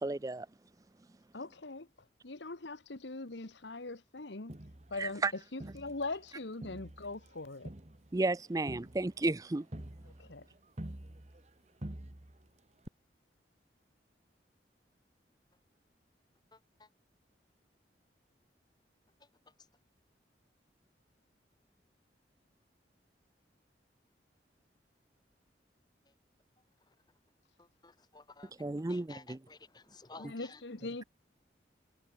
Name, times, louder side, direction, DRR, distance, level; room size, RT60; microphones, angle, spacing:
voice 1, 0.0-0.5 5.0-5.3 8.1-9.6 28.6-29.4, right 2 dB, 20° right, 0.4 m, -33 dB
voice 2, 1.3-1.9 2.2-4.6 4.9-7.7 10.0-10.5 30.2-31.0, left 3 dB, 80° left, 1.4 m, -41 dB
Crowd, 4.5-6.3 6.6-11.5 11.8-12.5 12.9-13.0, right 1 dB, 35° right, 1.4 m, -47 dB
voice 3, 16.5-16.9 27.6-28.5 28.9-30.6, left 3 dB, 25° left, 1.4 m, -54 dB
head